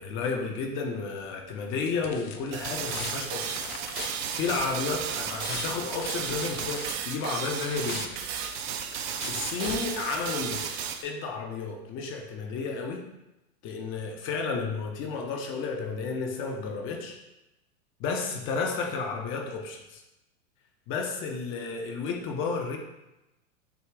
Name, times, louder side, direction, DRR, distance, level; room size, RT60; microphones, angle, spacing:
voice 1, 0.0-3.6 4.0-8.1 9.3-13.1 13.6-17.2 18.0-20.0 20.9-22.8, left 4 dB, 30° left, 2 dB, 0.5 m, -32 dB
sound 1, 1.2-10.6, left 7 dB, 70° left, 0.7 m, -42 dB
sound 2, 2.5-11.0, right 8 dB, 45° right, 0.5 m, -34 dB
6.8 x 2.3 x 3.3 m, 0.95 s
hypercardioid pair, 110°, 45 cm